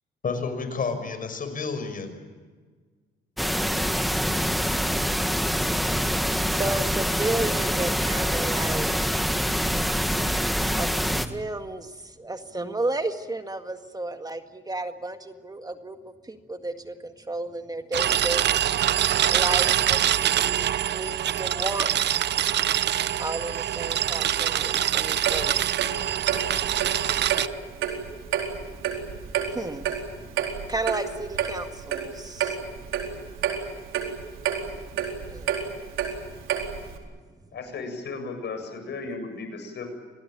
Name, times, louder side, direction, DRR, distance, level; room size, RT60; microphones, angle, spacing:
voice 1, 0.2-2.4, left 4 dB, 45° left, 5.9 m, -30 dB
sound 1, 3.4-11.3, equal, ahead, 1.8 m, -25 dB
voice 2, 6.5-9.1 10.7-10.9 11.2-18.5 19.3-22.2 23.2-25.9 26.7-26.8 28.1-28.2 28.7-30.4 30.7-32.6 35.3-35.5, right 2 dB, 20° right, 1.9 m, -33 dB
sound 2, 17.9-27.5, right 11 dB, 60° right, 0.7 m, -24 dB
Clock, 25.2-37.0, right 8 dB, 85° right, 4.3 m, -30 dB
voice 3, 37.5-39.9, left 4 dB, 60° left, 7.8 m, -35 dB
26.5 x 19.5 x 9.0 m
cardioid pair, 90°, 20 cm